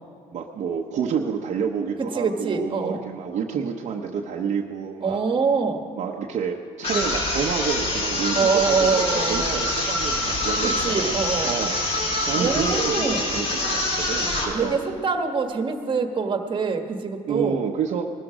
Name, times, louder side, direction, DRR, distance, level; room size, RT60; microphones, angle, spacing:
voice 1, 0.3-5.2 6.0-11.8 12.3-14.8 17.3-18.1, right 6 dB, 55° right, 0 dB, 1.0 m, -29 dB
voice 2, 2.1-3.0 5.0-5.8 8.3-9.6 10.8-11.5 12.3-13.2 14.5-17.6, right 5 dB, 35° right, 5 dB, 1.6 m, -24 dB
sound 1, 6.8-14.6, left 1 dB, 45° left, 3.6 m, -25 dB
20.0 x 13.5 x 5.0 m, 2.2 s
cardioid pair, 100°, 14 cm